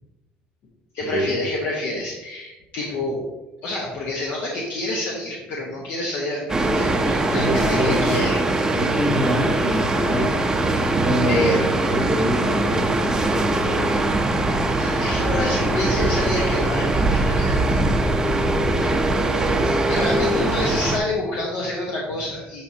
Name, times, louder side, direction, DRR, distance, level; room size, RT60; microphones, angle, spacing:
voice 1, 0.9-3.2 3.6-8.8 11.3-11.7 14.8-17.8 19.6-22.6, left 2 dB, 65° left, -2 dB, 1.1 m, -28 dB
sound 1, 6.5-21.0, right 2 dB, 15° right, 0.7 m, -21 dB
voice 2, 7.3-8.2 8.7-10.6 11.0-11.6 11.8-13.8, equal, 40° left, -2 dB, 2.4 m, -25 dB
8.8 x 4.8 x 2.8 m, 1.0 s
cardioid pair, 140°, 4 cm